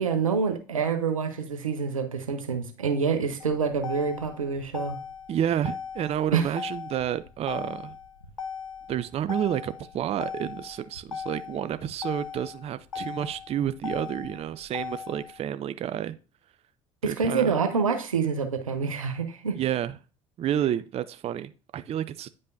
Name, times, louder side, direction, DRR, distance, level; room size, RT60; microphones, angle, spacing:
voice 1, 0.0-5.0 6.3-6.5 17.0-19.6, right 5 dB, 85° right, 1.0 m, -27 dB
Motor vehicle (road), 3.4-15.4, left 6 dB, 90° left, 0.7 m, -38 dB
voice 2, 5.3-8.0 8.9-16.2 17.0-17.5 19.5-20.0 20.4-22.3, right 10 dB, 40° right, 0.5 m, -30 dB
9.7 x 5.3 x 2.6 m
figure-of-eight pair, 60°, 17 cm